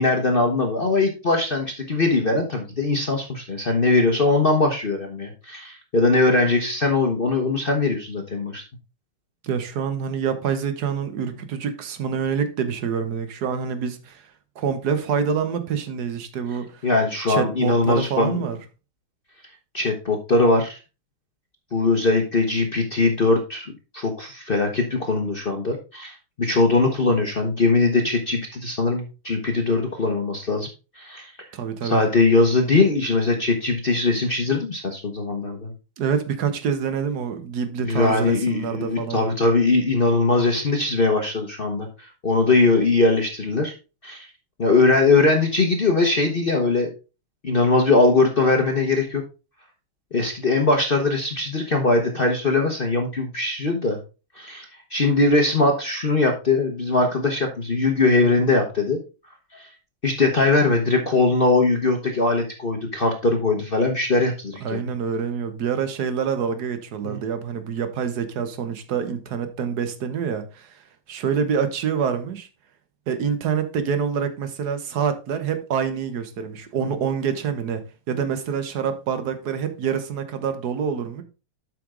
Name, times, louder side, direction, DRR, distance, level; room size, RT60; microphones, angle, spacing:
voice 1, 0.0-8.6 16.8-18.4 19.7-20.8 21.7-23.7 23.9-30.7 31.0-31.3 31.8-35.7 37.8-43.7 44.0-44.3 44.6-46.9 47.4-49.2 50.1-54.0 54.4-54.6 54.9-59.0 59.5-59.7 60.0-64.8 67.0-67.2, left 3 dB, 40° left, 0.8 m, -21 dB
voice 2, 9.4-14.2 14.5-16.9 17.3-18.6 31.5-32.0 36.0-39.3 64.6-70.7 71.1-72.5 73.1-81.2, right 7 dB, 55° right, 1.4 m, -26 dB
7.8 x 6.0 x 3.7 m
omnidirectional pair, 2.3 m